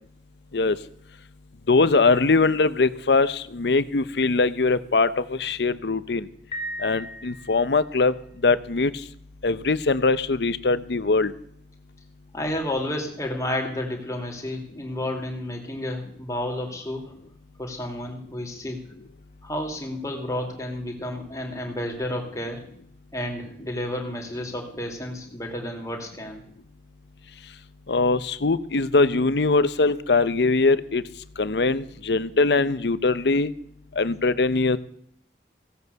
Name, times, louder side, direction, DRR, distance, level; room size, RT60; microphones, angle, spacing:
voice 1, 1.7-6.3 6.8-8.1 8.4-8.9 9.4-11.3 27.9-31.0 31.4-33.5 34.0-34.8, left 3 dB, 75° left, 15 dB, 0.7 m, -21 dB
Piano, 6.5-8.0, equal, 35° left, 2.9 m, -36 dB
voice 2, 12.3-17.1 17.6-18.9 19.4-22.6 23.1-26.4, left 1 dB, 20° left, 1 dB, 2.7 m, -31 dB
16.5 x 8.2 x 6.8 m, 0.68 s
head